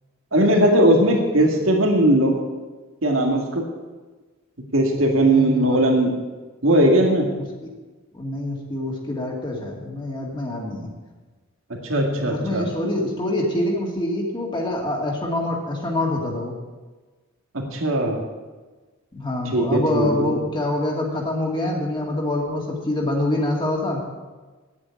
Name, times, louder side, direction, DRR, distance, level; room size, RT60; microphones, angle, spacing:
voice 1, 0.3-2.3 3.0-3.6 4.7-6.1 6.6-7.3 11.9-12.6 17.7-18.2 19.5-20.3, right 1 dB, 80° right, 0 dB, 2.0 m, -18 dB
voice 2, 5.1-6.0 7.4-7.7 8.1-10.9 12.2-16.6 19.1-24.0, left 1 dB, 25° left, -1 dB, 2.3 m, -26 dB
9.6 x 8.5 x 9.7 m, 1.3 s
head